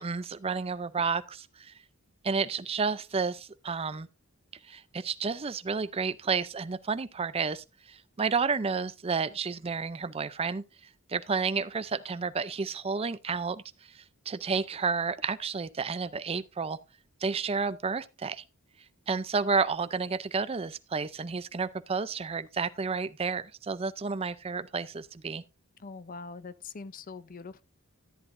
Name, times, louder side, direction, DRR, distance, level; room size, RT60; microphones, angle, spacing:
voice 1, 0.0-1.7 2.2-4.1 4.7-10.6 11.1-16.8 17.2-18.4 19.1-25.4, right 5 dB, 25° right, 0.4 m, -31 dB
voice 2, 25.8-27.6, left 4 dB, 40° left, 0.5 m, -43 dB
13.5 x 10.0 x 2.6 m
head